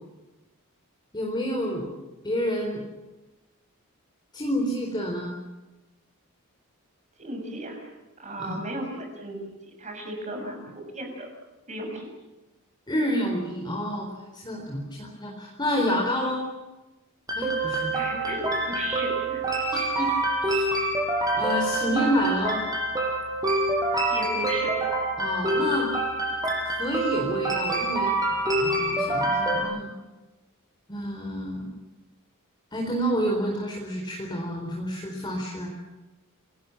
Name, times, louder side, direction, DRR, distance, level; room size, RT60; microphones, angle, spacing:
voice 1, 1.1-1.9 2.2-2.8 4.3-5.3 8.4-8.6 12.9-14.1 14.3-16.5 17.4-17.9 19.7-20.6 21.3-22.6 25.2-25.9 26.8-28.2 28.5-29.9 30.9-31.7 32.7-35.7, equal, 20° left, 0 dB, 4.2 m, -29 dB
voice 2, 7.2-7.8 8.2-9.4 9.6-11.3 11.7-12.1 17.9-19.5 24.1-24.7, right 1 dB, 35° right, 2 dB, 6.7 m, -35 dB
sound 1, 17.3-29.6, right 2 dB, 15° right, 6.9 m, -26 dB
29.0 x 20.0 x 7.4 m, 1.1 s
head